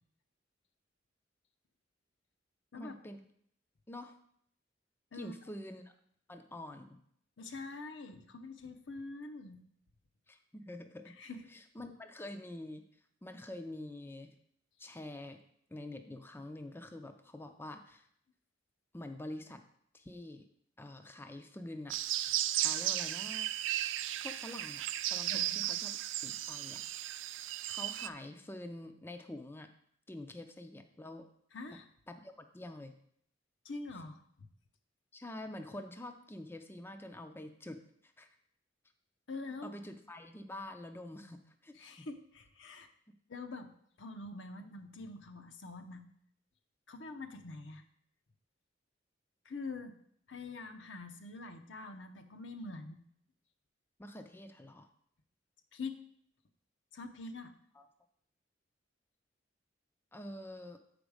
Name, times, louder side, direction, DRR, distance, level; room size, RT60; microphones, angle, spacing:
voice 1, 2.8-3.2 3.9-4.2 5.1-5.9 6.3-7.0 10.3-11.2 11.5-12.9 13.2-14.3 14.8-15.4 15.7-18.1 18.9-19.6 19.9-20.4 20.8-22.0 22.5-23.5 24.2-26.0 26.2-26.8 27.7-29.7 30.1-31.3 31.7-31.8 32.1-32.9 35.1-38.3 39.6-42.1 43.1-43.2 44.6-44.7 54.0-54.9 57.7-57.9 60.1-60.8, left 1 dB, 10° left, 6 dB, 0.4 m, -46 dB
voice 2, 7.4-9.6 11.2-11.4 25.3-25.5 31.5-31.8 33.6-34.2 39.3-39.7 41.7-42.9 43.3-43.7 44.0-46.0 46.9-47.8 49.4-50.0 50.3-53.0 55.7-56.0 56.9-57.5, left 3 dB, 75° left, 7 dB, 0.7 m, -45 dB
sound 1, 21.9-28.1, right 13 dB, 75° right, 0.3 m, -35 dB
7.0 x 5.1 x 4.8 m, 0.67 s
head